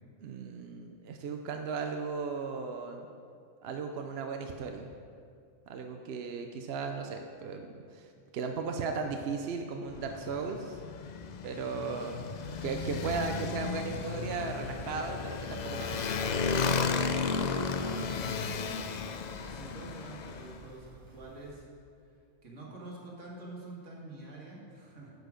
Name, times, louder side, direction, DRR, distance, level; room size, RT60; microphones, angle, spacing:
voice 1, 0.2-3.1 3.6-4.9 5.7-7.7 7.9-10.8 11.4-12.1 12.6-16.2, right 5 dB, 60° right, 4 dB, 0.8 m, -36 dB
Motorcycle, 9.9-20.6, left 5 dB, 55° left, 0.5 m, -34 dB
voice 2, 11.4-12.6 17.8-18.2 19.4-21.7 22.4-25.1, right 2 dB, 85° right, -4 dB, 2.3 m, -47 dB
sound 1, 12.3-21.5, equal, 20° right, 1.1 m, -54 dB
10.5 x 6.9 x 5.1 m, 2.3 s
omnidirectional pair, 1.2 m